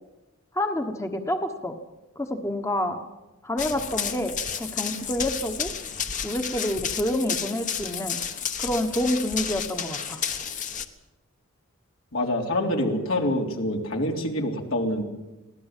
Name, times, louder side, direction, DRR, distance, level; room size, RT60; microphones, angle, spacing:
voice 1, 0.5-1.8 2.2-3.0 3.4-5.7 6.2-8.2 8.6-10.2, left 1 dB, 15° left, 5 dB, 1.2 m, -28 dB
Run, 3.6-10.8, left 7 dB, 35° left, 1.3 m, -31 dB
voice 2, 12.1-15.0, left 1 dB, 75° left, 1 dB, 3.5 m, -26 dB
24.0 x 17.0 x 7.4 m, 1.0 s
head